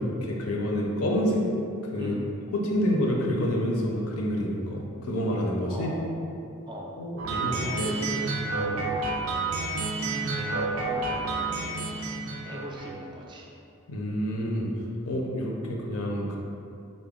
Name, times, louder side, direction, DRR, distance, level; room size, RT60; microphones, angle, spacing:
voice 1, 0.0-1.4 1.8-2.1 2.5-5.9 7.0-7.9 8.5-8.9 13.9-14.7 15.0-16.4, equal, 75° left, -1 dB, 0.6 m, -28 dB
voice 2, 2.0-2.3 5.7-6.1 6.7-7.0 7.4-8.4 10.3-12.0 12.4-13.5, equal, 20° right, -1 dB, 0.4 m, -40 dB
sound 1, 7.2-13.0, right 3 dB, 80° right, 0.4 m, -30 dB
3.8 x 2.2 x 3.6 m, 2.6 s
head